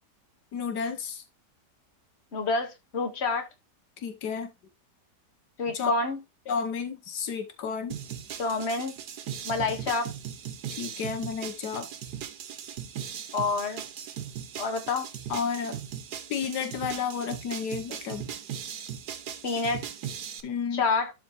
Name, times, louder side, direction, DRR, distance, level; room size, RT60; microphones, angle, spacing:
voice 1, 0.5-1.2 4.0-4.5 5.7-5.9 6.5-8.0 10.7-11.9 15.3-15.8 16.3-18.3 20.4-20.8, left 6 dB, 80° left, 1.6 m, -32 dB
voice 2, 2.3-3.5 5.6-6.2 8.4-8.9 9.5-10.1 13.3-13.8 14.6-15.1 19.4-19.8 20.7-21.1, left 3 dB, 40° left, 1.7 m, -28 dB
sound 1, 7.9-20.4, right 9 dB, 75° right, 1.5 m, -38 dB
12.0 x 4.2 x 3.1 m
omnidirectional pair, 1.7 m